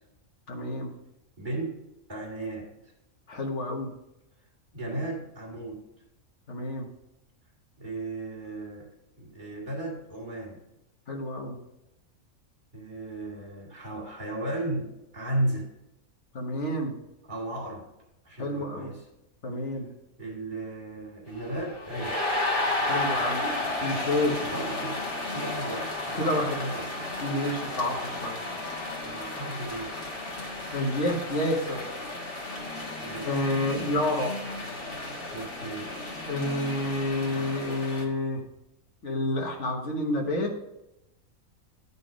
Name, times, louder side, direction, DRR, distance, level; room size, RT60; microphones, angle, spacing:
voice 1, 0.5-0.9 3.3-3.9 6.5-6.9 11.1-11.6 16.3-16.9 18.4-19.0 19.4-19.9 22.9-23.4 23.8-24.4 26.1-26.6 27.2-28.4 30.7-31.9 33.2-34.3 36.3-38.4 39.0-40.5, left 1 dB, 60° left, 0 dB, 1.5 m, -29 dB
voice 2, 1.4-1.8 2.1-2.9 4.7-5.8 7.8-8.9 9.2-10.6 12.7-15.7 17.2-17.9 18.2-19.1 19.6-19.8 20.2-22.4 23.3-23.4 24.4-25.1 25.3-26.9 29.0-29.9 33.0-33.5 33.8-34.0 35.3-36.0, right 1 dB, 35° right, -3 dB, 2.3 m, -35 dB
sound 1, 21.3-38.0, left 2 dB, 40° left, 1.7 m, -33 dB
11.0 x 4.1 x 4.9 m, 0.90 s
omnidirectional pair, 1.4 m